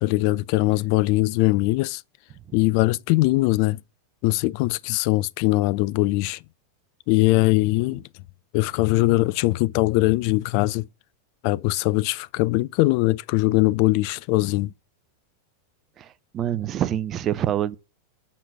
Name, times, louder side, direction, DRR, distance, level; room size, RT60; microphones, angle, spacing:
voice 1, 0.0-2.0 2.5-3.8 4.2-6.4 7.1-8.0 8.5-10.8 11.4-14.7, left 20 dB, 45° left, 0.4 m, -21 dB
voice 2, 16.0-17.8, right 11 dB, 30° right, 0.6 m, -26 dB
7.4 x 5.6 x 6.1 m
figure-of-eight pair, 90°, 0 cm